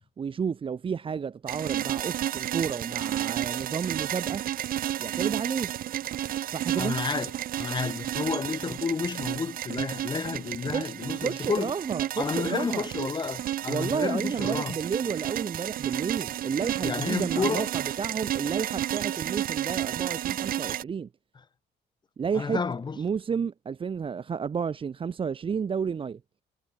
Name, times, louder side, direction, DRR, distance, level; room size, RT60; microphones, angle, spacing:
voice 1, 0.2-4.4 5.0-5.7 6.5-7.0 10.7-12.9 13.7-21.1 22.2-22.6 23.0-26.2, right 6 dB, 30° right, 1.2 m, -31 dB
sound 1, 1.5-20.8, right 12 dB, 60° right, 1.1 m, -32 dB
voice 2, 6.8-7.3 7.6-11.7 12.2-14.8 16.8-17.7 22.3-23.0, left 5 dB, 25° left, 2.0 m, -31 dB
cardioid pair, 135°, 17 cm